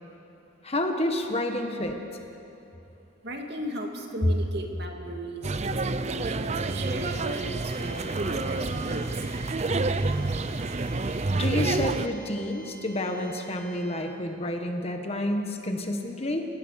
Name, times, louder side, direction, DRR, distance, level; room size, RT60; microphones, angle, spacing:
voice 1, 0.6-2.0 4.2-4.3 11.3-16.5, left 1 dB, 30° left, 4 dB, 1.5 m, -29 dB
voice 2, 3.2-9.3 10.1-10.4, right 1 dB, 55° right, 2 dB, 2.4 m, -37 dB
sound 1, 5.4-12.1, right 3 dB, 35° right, 0.6 m, -28 dB
sound 2, 6.5-14.2, right 1 dB, 75° right, 2.2 m, -48 dB
30.0 x 17.5 x 6.5 m, 2.9 s
head